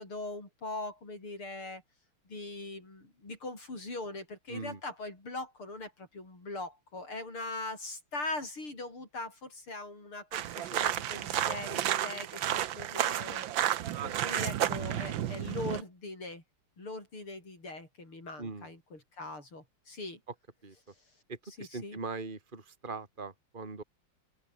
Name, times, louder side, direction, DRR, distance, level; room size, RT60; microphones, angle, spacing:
voice 1, 0.0-1.8 2.3-13.4 14.0-16.4 16.8-20.2 21.6-22.0, left 2 dB, 90° left, 9.1 m, -41 dB
voice 2, 4.5-4.8 14.0-14.2 18.4-18.7 20.6-20.8 21.3-23.8, right 3 dB, 25° right, 2.9 m, -41 dB
sound 1, 10.3-15.8, right 11 dB, 70° right, 1.7 m, -32 dB
open air
omnidirectional pair, 2.3 m